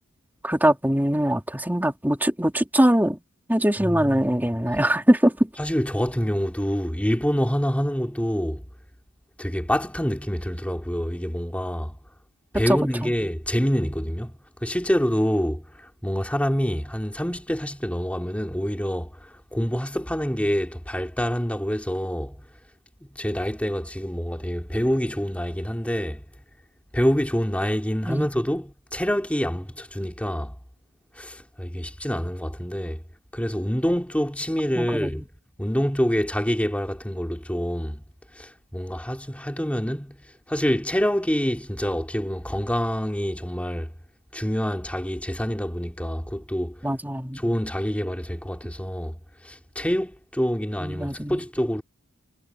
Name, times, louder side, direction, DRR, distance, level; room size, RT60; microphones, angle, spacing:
voice 1, 0.4-3.2 3.5-5.5 12.7-13.1 28.0-28.3 34.8-35.3 46.8-47.4 50.8-51.5, right 1 dB, 10° right, 2.6 m, -22 dB
voice 2, 3.8-4.2 5.6-8.6 9.4-12.0 12.5-22.4 23.1-26.2 26.9-30.5 31.2-33.0 33.3-35.2 35.6-38.0 38.3-40.2 40.5-43.9 44.3-46.8 47.3-49.2 49.4-51.8, equal, 5° left, 3.3 m, -26 dB
head